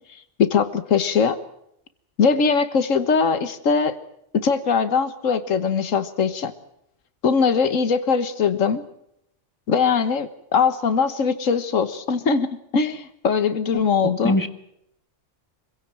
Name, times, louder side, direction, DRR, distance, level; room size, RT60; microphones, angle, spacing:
voice 1, 0.4-1.4 2.2-4.0 4.4-6.5 7.2-8.8 9.7-14.3, left 5 dB, 80° left, 12 dB, 1.7 m, -21 dB
voice 2, 13.7-14.5, left 1 dB, 15° left, 9 dB, 1.5 m, -24 dB
26.0 x 16.5 x 8.8 m, 0.75 s
omnidirectional pair, 1.3 m